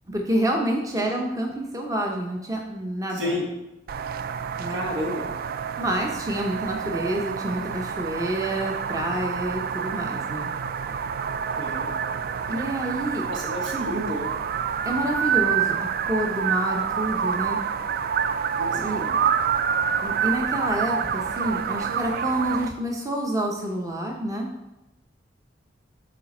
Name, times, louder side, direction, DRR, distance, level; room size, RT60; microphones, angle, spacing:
voice 1, 0.1-3.3 4.6-4.9 5.8-10.5 12.5-13.3 14.8-17.6 18.7-19.0 20.0-24.5, right 1 dB, 20° right, 0 dB, 0.6 m, -28 dB
voice 2, 3.1-3.4 4.7-5.3 11.6-11.9 13.3-14.3 18.6-19.2, left 1 dB, 85° right, -2 dB, 1.3 m, -30 dB
sound 1, 3.9-22.7, right 7 dB, 55° right, 0.3 m, -27 dB
7.5 x 4.1 x 4.2 m, 0.96 s
head